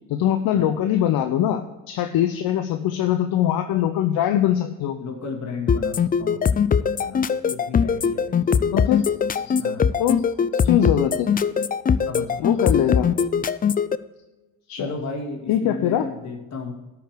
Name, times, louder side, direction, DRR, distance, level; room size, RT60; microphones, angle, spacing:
voice 1, 0.1-1.6 1.9-5.0 8.7-9.0 9.5-9.6 10.0-10.2 10.6-11.3 12.4-13.1 14.7-14.9 15.5-16.0, left 11 dB, 65° left, 8 dB, 0.8 m, -22 dB
voice 2, 5.0-8.6 9.6-10.0 12.0-13.0 14.8-16.7, left 4 dB, 45° left, 1 dB, 2.5 m, -34 dB
sound 1, 5.7-13.9, left 6 dB, 25° left, 0.4 m, -21 dB
12.5 x 4.9 x 6.7 m, 1.1 s
hypercardioid pair, 60°, 39 cm